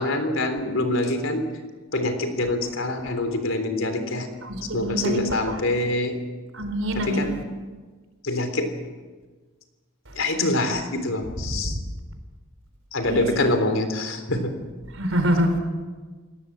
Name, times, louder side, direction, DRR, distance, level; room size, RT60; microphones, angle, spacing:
voice 1, 0.0-1.4 1.9-4.3 4.6-6.2 6.9-7.3 8.2-8.7 10.1-11.8 12.9-14.6, left 2 dB, 75° left, 7 dB, 3.6 m, -25 dB
voice 2, 4.4-5.2 5.5-5.6 6.5-7.3 11.5-11.8 13.0-13.5 15.0-15.6, equal, 85° right, 7 dB, 4.2 m, -25 dB
27.5 x 18.0 x 7.5 m, 1.4 s
head